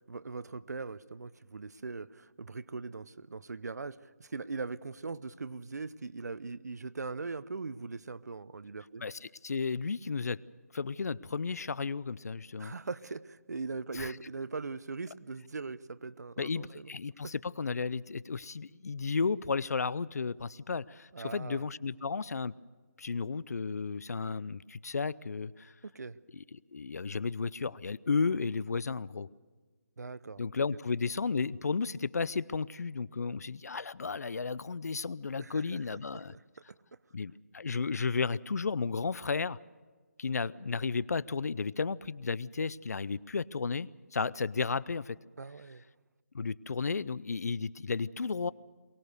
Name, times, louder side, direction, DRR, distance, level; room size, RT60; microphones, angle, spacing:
voice 1, 0.0-9.0 12.6-16.9 17.2-17.3 21.1-21.6 25.8-26.2 30.0-30.4 35.4-36.4 45.4-45.8, right 4 dB, 80° right, 16 dB, 0.8 m, -40 dB
voice 2, 9.0-10.4 10.7-12.7 13.9-14.1 16.4-22.5 23.0-25.7 26.3-29.3 30.4-36.3 37.1-39.6 40.2-45.2 46.3-48.5, left 4 dB, 70° left, 21 dB, 0.6 m, -33 dB
23.0 x 19.0 x 6.7 m, 1.4 s
hypercardioid pair, 165°, 9 cm